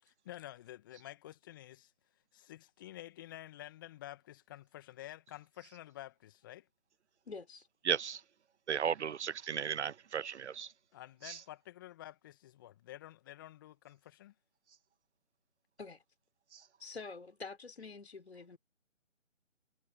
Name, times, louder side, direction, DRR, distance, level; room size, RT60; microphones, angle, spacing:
voice 1, 0.0-1.9 2.3-6.7 10.9-14.3, left 14 dB, 15° left, 2.0 m, -50 dB
voice 2, 7.3-7.7 15.8-16.0 16.8-18.6, left 4 dB, 55° left, 5.0 m, -47 dB
voice 3, 7.9-8.2 8.7-10.7 11.3-11.4 16.5-16.6, right 7 dB, 65° right, 0.5 m, -35 dB
figure-of-eight pair, 155°, 37 cm